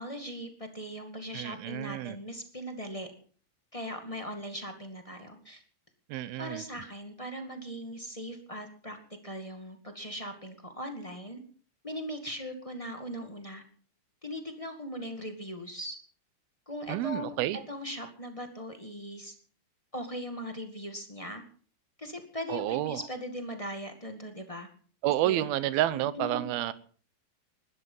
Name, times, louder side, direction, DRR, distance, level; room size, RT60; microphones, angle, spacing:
voice 1, 0.0-3.1 3.7-5.6 6.4-9.0 9.2-11.4 11.8-13.6 14.2-16.0 16.7-17.4 17.7-19.3 19.9-21.4 22.0-24.7 25.2-25.4 25.9-26.5, equal, 20° left, 6 dB, 0.9 m, -39 dB
voice 2, 1.3-2.2 6.1-6.6 16.9-17.6 22.5-23.0 25.0-26.7, right 14 dB, 85° right, 16 dB, 2.8 m, -29 dB
20.5 x 12.5 x 5.5 m, 0.43 s
omnidirectional pair, 4.2 m